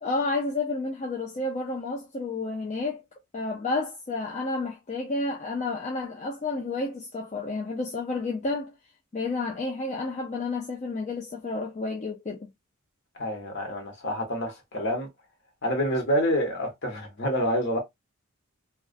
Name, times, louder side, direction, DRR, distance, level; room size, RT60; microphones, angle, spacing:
voice 1, 0.0-3.0 3.3-8.7 9.1-12.5, left 3 dB, 35° left, 0.4 m, -30 dB
voice 2, 13.2-15.1 15.6-17.8, equal, 55° left, 1.1 m, -27 dB
2.3 x 2.3 x 2.4 m
head